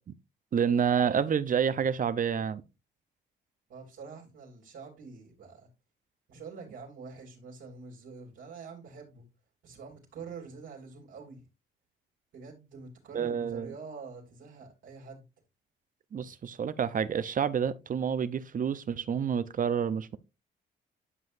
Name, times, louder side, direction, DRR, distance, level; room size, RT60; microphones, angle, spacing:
voice 1, 0.5-2.6 13.1-13.7 16.1-20.2, right 7 dB, 45° right, 0.7 m, -28 dB
voice 2, 3.7-5.7 6.3-9.2 9.6-11.4 12.3-15.2, right 5 dB, 75° right, 3.0 m, -46 dB
11.0 x 5.7 x 2.6 m
cardioid pair, 90°, 20 cm